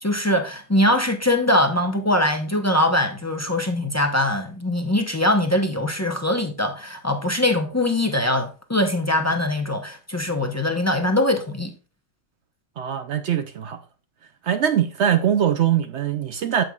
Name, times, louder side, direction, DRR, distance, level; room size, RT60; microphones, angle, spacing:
voice 1, 0.0-11.7, left 1 dB, 20° left, 0.5 m, -22 dB
voice 2, 12.8-13.8 14.4-16.6, right 9 dB, 65° right, 0.7 m, -22 dB
9.0 x 7.9 x 2.3 m
omnidirectional pair, 1.5 m